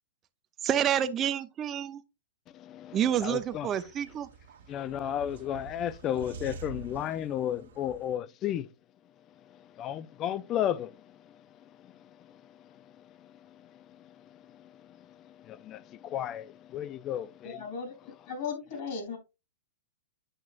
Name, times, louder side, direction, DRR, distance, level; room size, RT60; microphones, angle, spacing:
voice 1, 0.6-2.0 2.9-4.3, right 9 dB, 25° right, 0.7 m, -28 dB
voice 2, 2.6-3.7 4.7-8.7 9.5-11.5 11.8-17.6, left 10 dB, 30° left, 0.4 m, -35 dB
sound 1, 3.0-8.1, right 4 dB, 75° right, 1.4 m, -47 dB
voice 3, 17.4-17.9 18.3-19.2, left 5 dB, 55° left, 3.3 m, -36 dB
8.7 x 6.0 x 2.5 m
hypercardioid pair, 140°, 0 cm